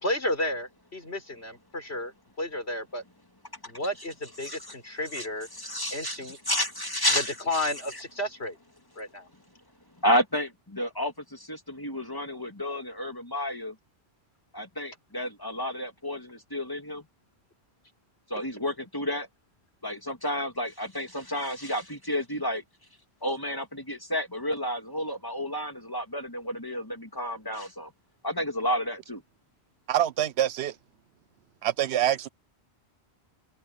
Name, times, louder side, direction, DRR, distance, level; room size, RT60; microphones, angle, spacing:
voice 1, 0.0-2.1 2.4-3.0 3.7-5.5 5.9-6.4 7.1-8.6 9.0-9.3, left 1 dB, 75° left, 5.4 m, -32 dB
voice 2, 5.5-6.2 6.5-7.7 10.0-13.7 14.5-17.0 18.3-19.3 19.8-22.6 23.2-27.9 28.2-29.2, equal, 20° left, 2.2 m, -31 dB
voice 3, 29.9-30.7 31.6-32.3, right 11 dB, 80° right, 1.0 m, -26 dB
open air
omnidirectional pair, 1.1 m